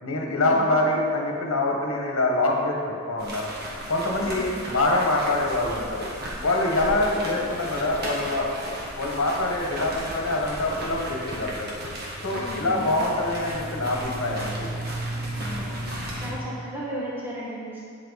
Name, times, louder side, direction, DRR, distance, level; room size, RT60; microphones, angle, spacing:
voice 1, 0.0-2.7 3.1-3.5 3.9-6.1 6.4-11.8 12.2-14.7, left 2 dB, 70° left, -1 dB, 1.5 m, -25 dB
sound 1, 3.2-16.3, right 1 dB, 45° right, 1.6 m, -34 dB
voice 2, 4.2-4.6 7.0-7.2 12.3-12.9 15.4-15.7 16.2-17.8, equal, 10° right, -7 dB, 1.5 m, -35 dB
8.9 x 7.7 x 4.2 m, 2.3 s
head